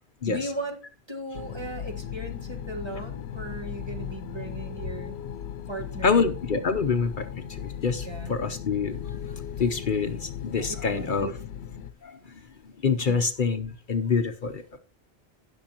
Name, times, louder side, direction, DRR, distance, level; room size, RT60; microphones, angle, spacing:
voice 1, 0.2-0.8 1.1-5.1 5.7-6.3 8.0-8.4 10.9-11.3 13.1-13.2, right 1 dB, 25° right, 3 dB, 1.5 m, -37 dB
sound 1, 1.3-11.9, left 9 dB, 90° left, 0.9 m, -37 dB
voice 2, 6.0-11.3 12.0-14.8, left 5 dB, 55° left, 9 dB, 0.9 m, -27 dB
17.5 x 6.2 x 2.9 m, 0.35 s
omnidirectional pair, 1.1 m